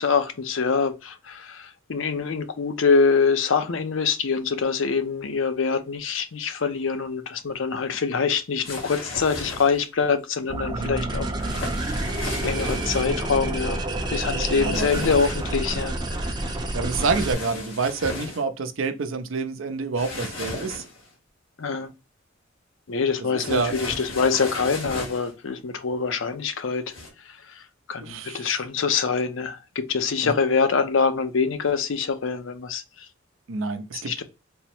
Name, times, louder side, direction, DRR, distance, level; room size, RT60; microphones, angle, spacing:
voice 1, 0.0-11.5 12.3-13.8 14.1-16.4 21.6-21.9 22.9-26.8 27.5-27.6 27.9-33.1 33.9-34.2, left 5 dB, 70° left, 0.6 m, -25 dB
sound 1, 8.6-9.9 11.4-13.1 14.7-15.5 16.9-18.4 20.0-21.1 23.4-25.3 26.9-27.1, left 2 dB, 85° left, 1.7 m, -35 dB
sound 2, 10.5-17.3, right 1 dB, 20° right, 0.5 m, -28 dB
voice 2, 10.7-11.1 14.5-14.9 16.7-20.8 23.3-23.7 28.0-28.5 30.2-30.3 33.5-34.2, right 4 dB, 75° right, 0.6 m, -28 dB
3.5 x 2.0 x 4.3 m
head